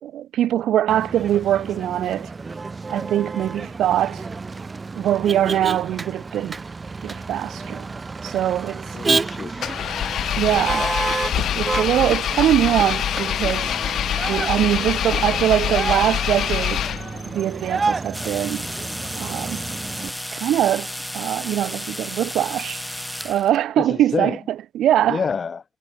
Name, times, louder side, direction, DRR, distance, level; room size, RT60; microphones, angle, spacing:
voice 1, 0.0-2.3 2.9-4.2 4.9-6.6 7.0-7.8 8.2-8.8 10.4-10.9 11.4-13.8 14.3-16.9 17.3-18.7 19.2-19.6 20.0-20.9 21.1-22.8 23.2-25.2, right 12 dB, 75° right, 2.2 m, -22 dB
Motor vehicle (road), 0.9-20.1, right 4 dB, 30° right, 2.6 m, -30 dB
voice 2, 8.9-9.9 10.5-10.9 23.8-24.4 25.1-25.6, left 5 dB, 40° left, 1.9 m, -28 dB
Engine, 9.6-17.3, left 10 dB, 70° left, 1.4 m, -25 dB
sound 1, 18.1-23.6, equal, ahead, 3.1 m, -33 dB
cardioid pair, 90°, 0 cm